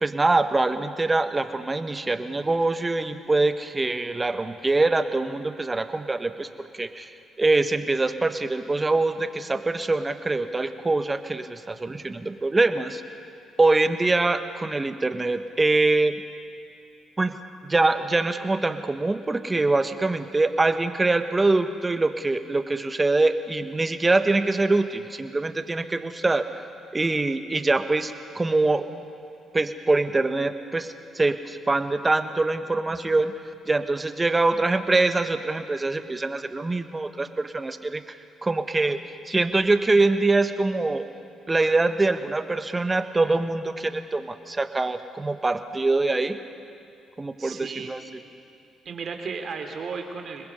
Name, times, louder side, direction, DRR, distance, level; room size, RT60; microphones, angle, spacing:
voice 1, 0.0-7.1 7.4-13.0 13.6-16.1 17.2-17.4 17.6-26.6 26.9-28.9 29.5-33.3 33.7-39.0 39.2-41.1 41.5-46.4 47.2-48.0, right 2 dB, 25° right, 9 dB, 1.4 m, -24 dB
voice 2, 47.4-47.9 48.8-50.5, right 5 dB, 55° right, 4 dB, 2.9 m, -34 dB
26.0 x 21.0 x 5.6 m, 2.5 s
hypercardioid pair, 50°, 0 cm